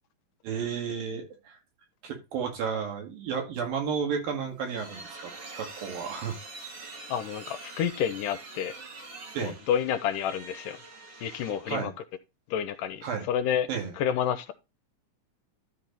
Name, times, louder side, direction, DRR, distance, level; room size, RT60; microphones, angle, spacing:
voice 1, 0.4-1.6 2.0-6.4 9.3-9.6 11.7-11.9 13.0-13.3 13.7-14.0, right 6 dB, 80° right, 3.9 m, -32 dB
sound 1, 4.3-11.8, right 3 dB, 45° right, 2.8 m, -45 dB
voice 2, 7.1-8.7 9.4-10.8 11.2-11.9 12.5-13.7 14.0-14.5, left 9 dB, 80° left, 2.1 m, -29 dB
12.5 x 4.5 x 4.0 m
omnidirectional pair, 4.0 m